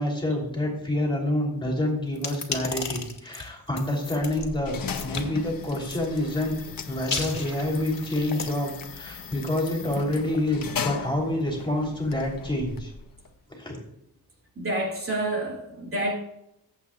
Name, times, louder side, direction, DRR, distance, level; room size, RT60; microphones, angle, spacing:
voice 1, 0.0-6.6 6.9-12.9 13.6-13.8, left 1 dB, 15° left, 3.5 m, -27 dB
sound 1, 2.2-4.5 4.9-5.3 5.8-6.4 6.9-8.5, left 4 dB, 45° left, 2.3 m, -34 dB
sound 2, 4.0-13.3, left 6 dB, 65° left, 1.2 m, -38 dB
voice 2, 14.6-16.1, right 1 dB, 35° right, 2.6 m, -28 dB
23.0 x 8.4 x 2.5 m
wide cardioid pair, 130°, 37 cm